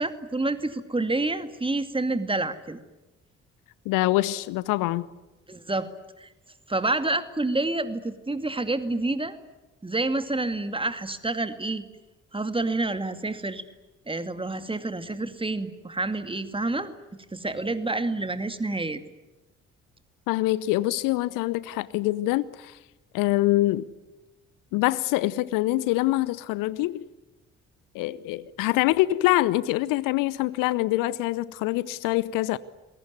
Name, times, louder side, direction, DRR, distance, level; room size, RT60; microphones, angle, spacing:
voice 1, 0.0-2.8 5.5-5.9 6.2-6.3 6.7-9.4 9.8-11.9 12.3-13.6 14.1-16.9 17.3-19.0, right 2 dB, 15° right, 2.3 m, -28 dB
voice 2, 3.8-5.1 20.3-22.8 23.1-23.9 24.7-27.0 27.9-32.6, left 17 dB, 60° left, 0.9 m, -25 dB
28.0 x 22.0 x 9.7 m
figure-of-eight pair, 45°, 37 cm